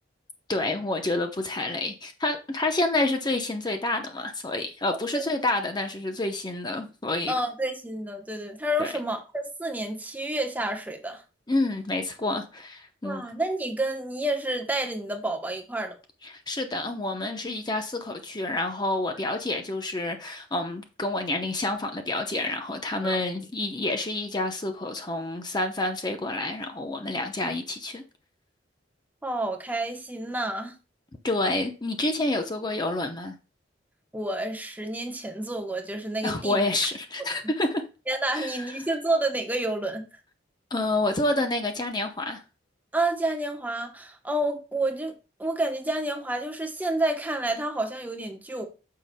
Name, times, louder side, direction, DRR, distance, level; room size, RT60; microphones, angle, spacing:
voice 1, 0.5-7.3 8.8-8.9 11.5-13.2 16.2-28.0 31.2-33.3 36.2-37.8 38.3-38.7 40.7-42.4, left 2 dB, 25° left, 0.8 m, -28 dB
voice 2, 7.3-11.2 13.0-16.0 23.0-23.2 29.2-30.7 34.1-36.6 37.2-37.4 38.1-40.1 42.9-48.7, right 1 dB, 10° right, 0.9 m, -29 dB
9.5 x 6.6 x 2.2 m
head